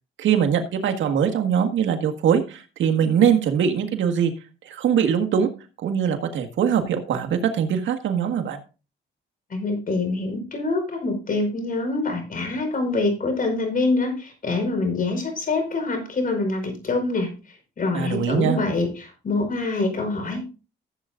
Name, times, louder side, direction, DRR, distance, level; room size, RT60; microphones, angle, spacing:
voice 1, 0.2-4.3 4.6-5.5 5.8-8.6 17.9-18.6, right 8 dB, 75° right, 5 dB, 1.6 m, -22 dB
voice 2, 9.5-20.5, left 3 dB, 45° left, 4 dB, 4.9 m, -25 dB
15.0 x 8.0 x 2.5 m, 0.32 s
cardioid pair, 90°, 20 cm